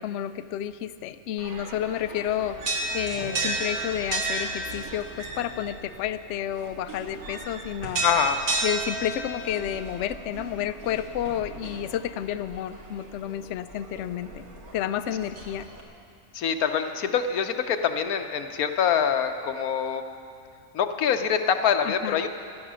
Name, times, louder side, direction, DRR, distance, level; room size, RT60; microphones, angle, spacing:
voice 1, 0.0-2.6 2.9-8.0 8.6-14.5 14.7-15.7 21.8-22.2, left 10 dB, 65° left, 12 dB, 0.8 m, -30 dB
sound 1, 1.4-15.8, right 2 dB, 90° right, 2.2 m, -34 dB
voice 2, 8.0-8.4 16.3-20.0 20.7-22.3, left 7 dB, 85° left, 7 dB, 1.3 m, -25 dB
15.5 x 12.0 x 6.2 m, 2.4 s
omnidirectional pair, 1.5 m